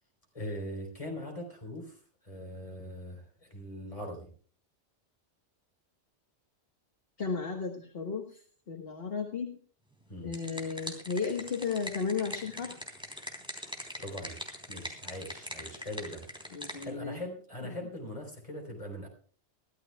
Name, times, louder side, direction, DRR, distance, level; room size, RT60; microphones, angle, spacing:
voice 1, 0.3-1.9 2.2-4.3 10.1-10.3 14.0-14.4 14.7-16.2 16.8-19.1, left 1 dB, 30° left, 2 dB, 4.1 m, -41 dB
voice 2, 7.2-9.6 10.2-12.7 16.5-17.2 17.6-17.9, left 5 dB, 60° left, 2 dB, 1.6 m, -34 dB
sound 1, 10.0-16.9, equal, 5° right, 3.3 m, -42 dB
23.5 x 14.0 x 2.3 m, 0.43 s
omnidirectional pair, 1.2 m